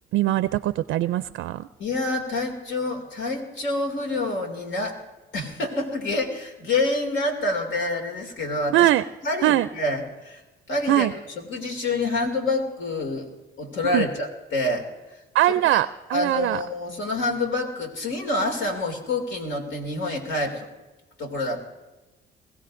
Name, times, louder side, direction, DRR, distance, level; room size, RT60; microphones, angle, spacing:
voice 1, 0.1-1.7 8.7-9.0 9.4-9.7 10.9-11.1 13.9-14.1 15.3-16.6, right 14 dB, 80° right, 14 dB, 0.4 m, -21 dB
voice 2, 1.8-5.0 5.3-8.9 9.2-10.4 10.7-11.1 11.4-13.3 13.6-14.9 15.5-15.8 16.1-20.7 21.2-21.6, left 2 dB, 75° left, 3 dB, 2.5 m, -27 dB
21.5 x 16.0 x 2.6 m, 1.1 s
cardioid pair, 90°, 20 cm